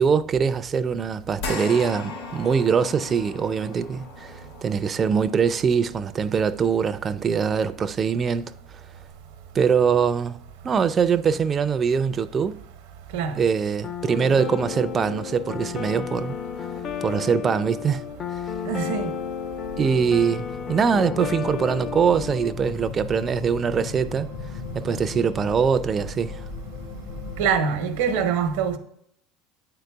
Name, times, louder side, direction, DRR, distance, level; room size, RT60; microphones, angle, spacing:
voice 1, 0.0-8.5 9.5-10.4 10.6-12.6 13.4-16.4 17.0-18.0 19.8-24.3 24.7-26.4, right 6 dB, 30° right, 0.4 m, -23 dB
sound 1, 1.4-10.0 10.4-10.6 12.0-12.1, left 4 dB, 85° left, 2.2 m, -39 dB
sound 2, 13.8-22.5, left 8 dB, 35° left, 0.5 m, -32 dB
voice 2, 18.6-19.2 24.8-25.1 27.4-28.8, right 7 dB, 85° right, 0.8 m, -24 dB
sound 3, 19.6-27.5, left 4 dB, 65° left, 1.1 m, -37 dB
9.0 x 3.9 x 3.4 m
supercardioid pair, 120°, 0 cm